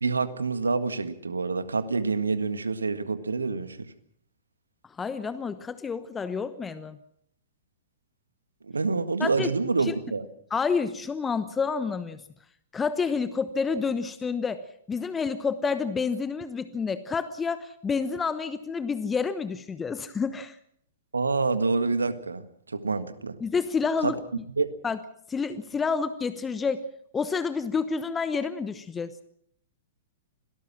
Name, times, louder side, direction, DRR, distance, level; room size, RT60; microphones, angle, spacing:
voice 1, 0.0-3.9 8.6-10.2 21.1-22.4 22.7-23.4 24.0-24.1 24.6-24.7, right 4 dB, 80° right, 1.7 m, -27 dB
voice 2, 4.8-7.0 9.2-9.5 9.8-9.9 10.5-12.2 12.7-20.6 23.4-24.1 24.8-25.0 25.3-26.9 27.1-29.1, left 5 dB, 15° left, 1.1 m, -29 dB
26.0 x 18.0 x 6.1 m
figure-of-eight pair, 110°, 0 cm